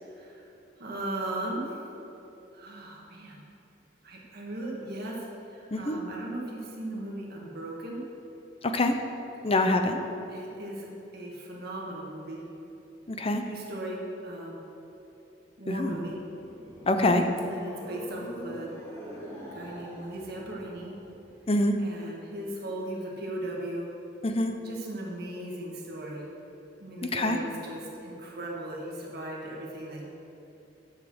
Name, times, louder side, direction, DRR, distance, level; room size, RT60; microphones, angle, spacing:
voice 1, 0.0-0.5 0.8-1.8 2.5-3.4 4.0-8.0 10.3-12.4 13.4-14.6 15.6-16.2 17.5-18.7 19.5-20.9 21.8-23.9 24.6-26.2 26.8-30.0, right 1 dB, 60° right, -3 dB, 1.9 m, -37 dB
voice 2, 8.6-8.9 9.4-10.0 13.1-13.4 15.7-16.0 16.9-17.3 21.5-21.8 24.2-24.5 27.1-27.4, left 2 dB, 35° left, 6 dB, 0.7 m, -25 dB
sound 1, 16.2-21.4, equal, 15° left, 2.3 m, -44 dB
10.0 x 5.7 x 6.2 m, 2.9 s
head